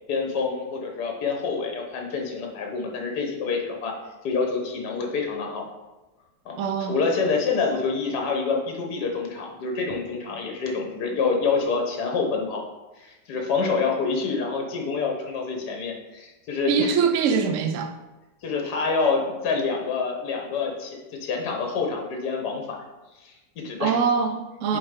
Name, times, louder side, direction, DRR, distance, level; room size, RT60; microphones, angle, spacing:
voice 1, 0.1-3.9 4.2-5.7 6.4-6.6 6.9-12.6 13.0-16.9 18.4-22.8 23.2-24.0 24.7-24.8, left 4 dB, 70° left, 1.5 m, -27 dB
voice 2, 6.6-7.0 16.7-17.9 23.8-24.8, right 6 dB, 65° right, 0.8 m, -23 dB
6.8 x 4.1 x 3.6 m
omnidirectional pair, 1.8 m